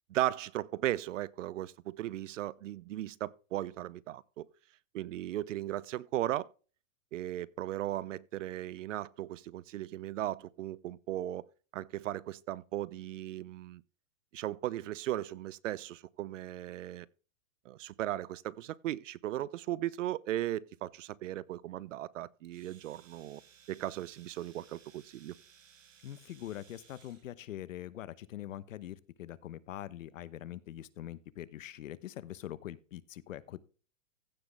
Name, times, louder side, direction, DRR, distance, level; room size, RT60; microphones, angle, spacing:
voice 1, 0.1-4.5 4.9-6.5 7.1-11.4 11.7-13.8 14.3-17.1 17.7-23.4 23.7-25.3, right 13 dB, 75° right, 0.7 m, -37 dB
Domestic sounds home sounds, 22.4-27.3, right 7 dB, 90° right, 3.4 m, -61 dB
voice 2, 26.0-33.6, left 12 dB, 80° left, 1.0 m, -43 dB
15.5 x 6.0 x 3.5 m
hypercardioid pair, 150°, 38 cm